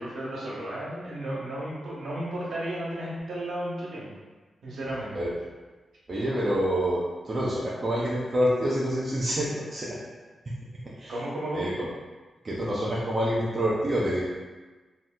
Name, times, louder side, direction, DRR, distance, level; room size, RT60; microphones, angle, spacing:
voice 1, 0.0-4.1 4.6-5.1 11.1-11.6, right 1 dB, 75° right, -7 dB, 1.0 m, -33 dB
voice 2, 6.1-10.0 10.8-11.1 11.5-11.9 12.4-14.2, equal, 45° right, -6 dB, 0.6 m, -27 dB
2.7 x 2.0 x 3.6 m, 1.3 s
supercardioid pair, 45°, 0 cm